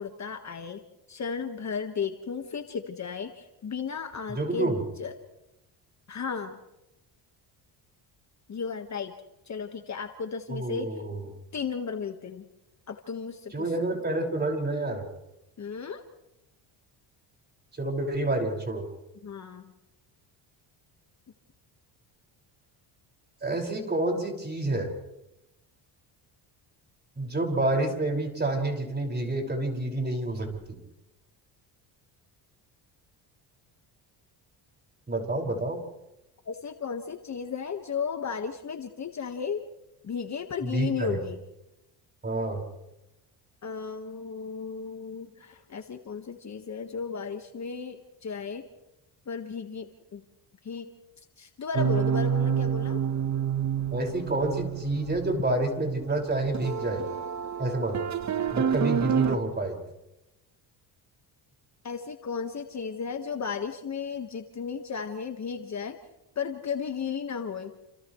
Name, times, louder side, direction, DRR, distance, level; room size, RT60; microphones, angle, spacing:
voice 1, 0.0-5.1 6.1-6.6 8.5-9.1 9.5-11.0 11.5-12.5 12.9-13.7 15.6-16.0 19.2-19.7 36.4-39.6 40.0-41.4 43.6-48.7 49.3-50.2 50.6-50.9 51.4-53.0 61.8-66.0 66.3-67.7, left 6 dB, 35° left, 5 dB, 1.5 m, -34 dB
voice 2, 4.3-4.8 10.5-11.3 13.5-15.1 17.8-18.9 23.4-24.9 27.2-30.8 35.1-35.8 40.6-41.2 42.2-42.6 53.9-57.1 57.6-58.1 58.5-59.8, right 2 dB, 20° right, 2 dB, 5.6 m, -28 dB
sound 1, 51.7-59.4, right 8 dB, 35° right, 1.1 m, -28 dB
30.0 x 28.5 x 3.2 m, 0.92 s
cardioid pair, 100°, 47 cm